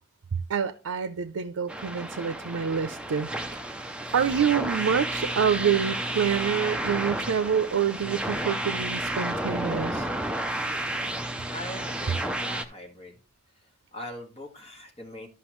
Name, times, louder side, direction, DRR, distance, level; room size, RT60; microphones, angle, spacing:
voice 1, 0.5-3.6 4.1-10.1, right 7 dB, 90° right, 0.5 m, -27 dB
sound 1, 1.7-12.7, right 1 dB, 5° right, 0.4 m, -31 dB
voice 2, 11.5-13.2 13.5-15.3, left 1 dB, 30° left, 1.7 m, -41 dB
12.0 x 5.6 x 3.1 m
head